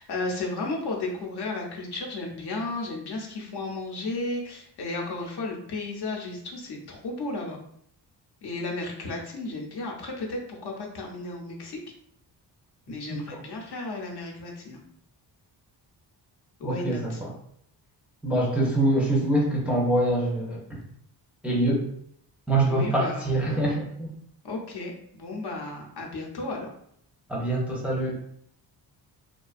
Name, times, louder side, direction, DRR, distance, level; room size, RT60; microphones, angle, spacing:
voice 1, 0.0-7.6 8.4-11.8 12.9-14.8 16.6-17.2 18.6-18.7 22.7-23.8 24.4-26.7, left 2 dB, 65° left, -1 dB, 0.7 m, -34 dB
voice 2, 13.1-13.4 16.6-17.3 18.2-20.8 21.4-21.8 22.5-24.1 27.3-28.2, right 1 dB, 5° right, -3 dB, 0.5 m, -25 dB
2.5 x 2.2 x 2.4 m, 0.69 s
cardioid pair, 80°, 43 cm